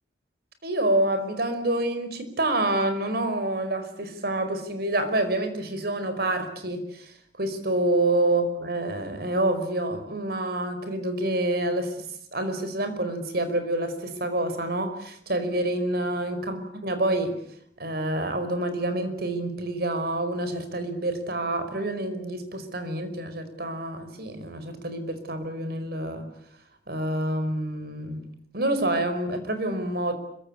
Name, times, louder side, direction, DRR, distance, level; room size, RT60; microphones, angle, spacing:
voice 1, 0.6-12.1 12.3-17.4 17.8-26.3 26.9-28.2 28.5-30.1, right 1 dB, 60° right, 9 dB, 5.0 m, -27 dB
26.0 x 24.0 x 8.6 m, 0.70 s
head